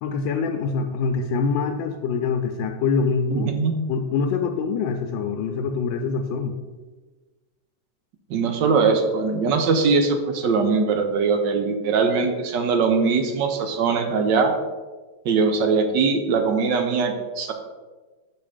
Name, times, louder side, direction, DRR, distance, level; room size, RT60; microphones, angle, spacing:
voice 1, 0.0-3.5 3.9-6.6, left 5 dB, 75° left, 3 dB, 1.2 m, -24 dB
voice 2, 3.4-3.7 8.3-14.5 15.2-17.5, right 4 dB, 70° right, 5 dB, 1.2 m, -21 dB
5.8 x 4.6 x 4.9 m, 1.3 s
omnidirectional pair, 2.2 m